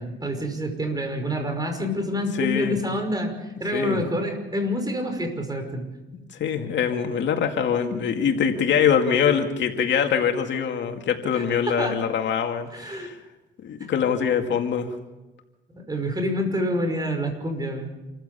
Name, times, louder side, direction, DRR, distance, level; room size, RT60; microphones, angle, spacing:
voice 1, 0.0-5.9 11.3-12.0 12.7-13.1 15.7-17.9, equal, 20° right, 5 dB, 5.6 m, -27 dB
voice 2, 2.4-2.8 3.7-4.0 6.4-13.2 13.6-14.9, left 7 dB, 65° left, 5 dB, 2.3 m, -23 dB
28.0 x 15.0 x 7.0 m, 1.1 s
cardioid pair, 90°, 20 cm